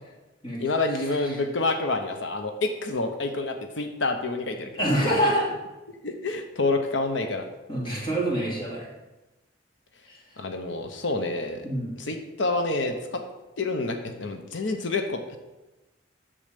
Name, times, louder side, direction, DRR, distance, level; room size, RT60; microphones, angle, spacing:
voice 1, 0.6-4.7 5.1-5.2 6.0-7.4 10.4-11.6 12.0-13.2 13.6-15.4, left 3 dB, 90° left, 6 dB, 0.9 m, -28 dB
voice 2, 4.8-5.5 7.7-8.9 10.1-10.2 11.6-11.9, right 1 dB, 25° left, -4 dB, 2.6 m, -25 dB
8.6 x 7.0 x 5.2 m, 1.0 s
head